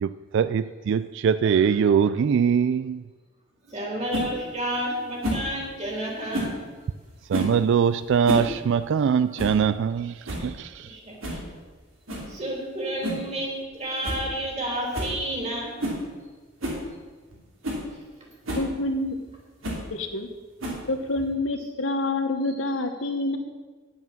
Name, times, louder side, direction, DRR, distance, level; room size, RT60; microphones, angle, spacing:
voice 1, 0.0-3.0 7.3-10.9, right 7 dB, 65° right, 0.3 m, -22 dB
voice 2, 3.7-6.5 10.8-11.4 12.3-15.7, right 1 dB, 35° right, 3.2 m, -30 dB
sound 1, 4.1-4.3 5.2-5.5 6.3-6.6 7.3-7.6 8.1-8.5 8.8-8.9 9.4-9.6 10.0-10.1 10.3-10.5 11.2-11.4 12.1-12.3 13.0-13.3 13.6-13.7 14.0-14.2 14.5-14.6 14.9-15.2 15.8-16.0 16.6-16.8 17.3-17.4 17.6-17.8 18.5-18.7 19.6-19.9 20.6-21.0, equal, 85° right, 2.8 m, -30 dB
voice 3, 18.5-19.2 19.9-20.3 20.9-23.4, left 2 dB, 70° left, 1.1 m, -27 dB
9.4 x 8.1 x 7.1 m
head